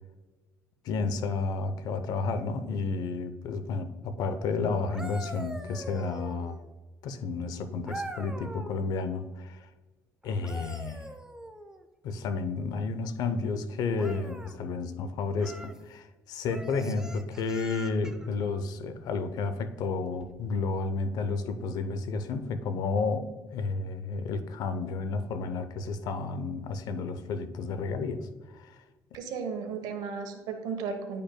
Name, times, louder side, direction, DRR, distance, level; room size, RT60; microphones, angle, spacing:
voice 1, 0.8-6.6 7.0-9.7 10.2-11.1 12.0-28.3 28.5-28.8, left 4 dB, 70° left, 10 dB, 0.6 m, -31 dB
sound 1, 4.7-6.7 7.9-8.8 10.2-11.8 13.9-14.5 15.4-15.8 16.5-18.3 20.1-20.3, right 1 dB, 10° right, 0.6 m, -43 dB
voice 2, 29.1-31.2, right 5 dB, 80° right, 6 dB, 1.1 m, -34 dB
10.0 x 5.2 x 2.2 m, 1.2 s
cardioid pair, 90°, 7 cm